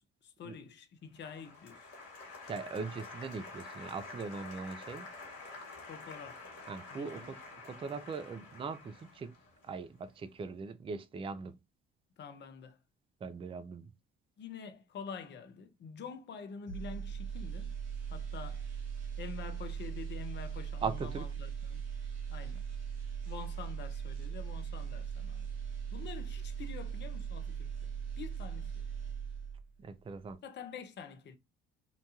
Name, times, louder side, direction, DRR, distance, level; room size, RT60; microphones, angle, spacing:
voice 1, 0.2-1.9 5.8-6.5 6.9-7.3 12.2-12.8 14.4-17.8 18.1-18.6 19.2-21.8 22.3-22.7 23.2-25.5 25.9-28.8 30.4-31.4, left 6 dB, 35° left, 0.5 m, -47 dB
Applause, 1.2-10.2, left 3 dB, 50° left, 1.4 m, -49 dB
voice 2, 2.5-5.1 6.7-7.4 7.7-9.3 9.6-11.6 13.2-13.9 20.8-21.2 29.8-30.4, right 5 dB, 15° right, 0.3 m, -40 dB
sound 1, 16.7-29.8 30.1-30.3, right 7 dB, 85° right, 0.8 m, -39 dB
2.8 x 2.2 x 2.6 m
hypercardioid pair, 50°, 33 cm